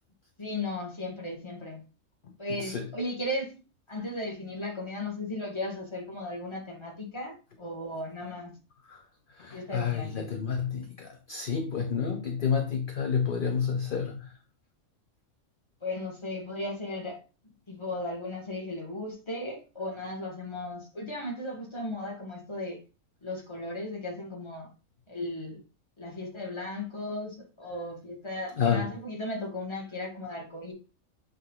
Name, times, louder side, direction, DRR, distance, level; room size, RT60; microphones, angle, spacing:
voice 1, 0.4-1.8 2.4-3.5 3.9-8.5 9.5-10.3 15.8-17.2 17.7-22.8 23.2-24.7 25.1-25.6 26.0-30.7, left 1 dB, 20° left, 1.9 m, -36 dB
voice 2, 9.4-14.4 28.6-28.9, left 6 dB, 45° left, 0.8 m, -29 dB
8.1 x 3.5 x 3.9 m
omnidirectional pair, 1.4 m